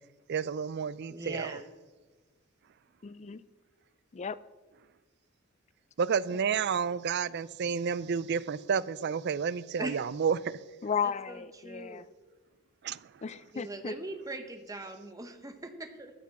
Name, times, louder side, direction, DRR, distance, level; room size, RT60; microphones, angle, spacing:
voice 1, 0.3-1.6 6.0-10.6 12.8-13.2, right 6 dB, 50° right, 0.4 m, -31 dB
voice 2, 1.1-1.6 9.8-9.9 11.3-12.1 13.5-16.1, right 2 dB, 15° right, 1.0 m, -40 dB
voice 3, 3.0-3.4 4.1-4.4 10.8-12.1 13.2-14.0, left 6 dB, 30° left, 0.4 m, -34 dB
13.0 x 8.2 x 5.9 m
head